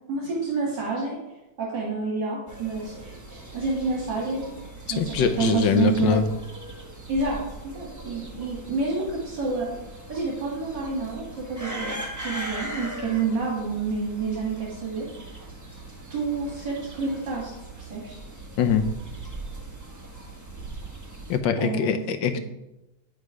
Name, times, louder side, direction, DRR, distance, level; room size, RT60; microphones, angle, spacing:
voice 1, 0.1-1.1 1.6-4.5 4.9-6.2 7.1-7.4 7.7-9.7 10.1-15.1 16.1-17.5 17.8-18.2 21.6-22.0, right 4 dB, 70° right, -4 dB, 2.5 m, -28 dB
sound 1, 2.5-21.4, right 2 dB, 15° right, 0.8 m, -40 dB
voice 2, 5.0-6.3 18.6-18.8 21.3-22.4, left 7 dB, 90° left, 9 dB, 1.5 m, -23 dB
9.3 x 6.6 x 4.9 m, 0.96 s
omnidirectional pair, 2.0 m